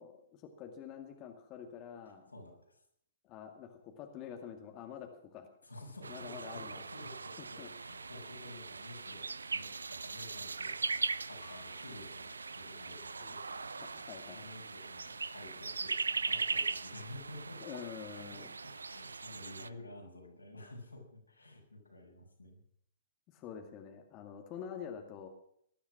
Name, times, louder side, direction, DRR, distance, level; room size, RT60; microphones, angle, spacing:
voice 1, 0.0-2.3 3.2-5.5 6.1-6.8 7.4-7.7 13.2-13.4 13.6-14.4 17.6-18.5 23.3-25.3, left 8 dB, 30° left, 3 dB, 2.2 m, -47 dB
voice 2, 2.3-2.8 5.6-10.7 11.3-13.8 14.3-17.6 18.1-22.6, left 2 dB, 90° left, 0 dB, 6.6 m, -51 dB
sound 1, 6.0-19.7, right 4 dB, 80° right, 0.6 m, -40 dB
sound 2, 11.4-13.2, left 8 dB, 60° left, 2.1 m, -62 dB
19.5 x 11.5 x 6.1 m, 0.67 s
figure-of-eight pair, 120°, 0 cm